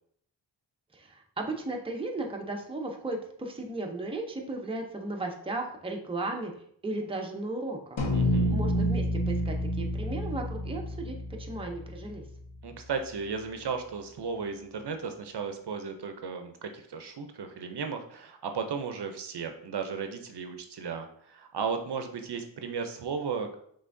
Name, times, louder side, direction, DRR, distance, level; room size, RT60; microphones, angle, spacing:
voice 1, 0.9-6.5 6.8-8.0 8.5-12.2, right 2 dB, 10° right, 1 dB, 0.6 m, -35 dB
sound 1, 8.0-12.6, equal, 80° left, 1.3 m, -29 dB
voice 2, 8.1-8.6 12.6-23.5, right 5 dB, 60° right, 6 dB, 0.6 m, -35 dB
5.5 x 3.4 x 2.6 m, 0.66 s
wide cardioid pair, 100°, 45 cm